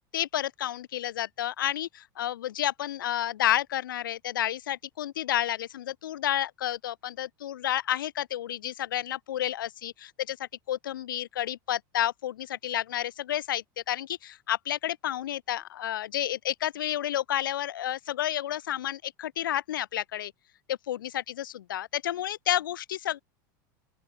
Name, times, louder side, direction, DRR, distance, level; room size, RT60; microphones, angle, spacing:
voice 1, 0.1-20.3 20.7-23.2, left 12 dB, 90° left, 3.0 m, -31 dB
open air
supercardioid pair, 115°, 11 cm